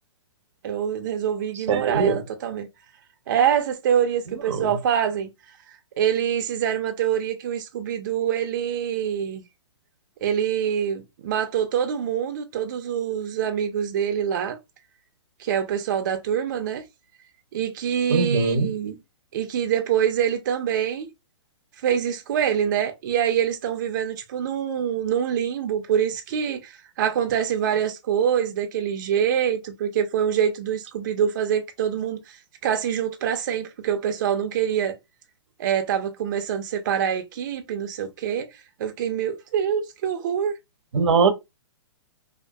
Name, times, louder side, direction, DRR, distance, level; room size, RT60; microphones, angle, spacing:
voice 1, 0.6-2.7 3.3-5.3 6.0-9.4 10.2-14.6 15.4-16.8 17.5-19.0 19.3-21.1 21.8-34.9 35.6-38.5 38.8-40.5, right 8 dB, 45° right, 0.4 m, -25 dB
voice 2, 1.7-2.2 4.5-4.7 18.1-18.7 40.9-41.3, right 4 dB, 90° right, 0.7 m, -21 dB
2.6 x 2.3 x 2.2 m
hypercardioid pair, 160°, 15 cm